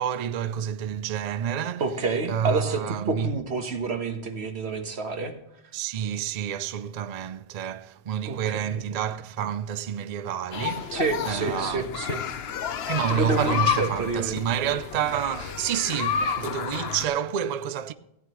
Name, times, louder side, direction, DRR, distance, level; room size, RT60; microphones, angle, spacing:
voice 1, 0.0-1.8 2.3-3.3 5.7-11.9 12.9-17.9, right 9 dB, 50° right, 0.5 m, -29 dB
voice 2, 1.8-5.3 8.2-8.8 10.9-12.2 13.1-14.4, right 3 dB, 85° right, 1.5 m, -28 dB
sound 1, 10.5-17.1, left 8 dB, 75° left, 0.9 m, -30 dB
15.0 x 9.4 x 3.0 m
omnidirectional pair, 1.1 m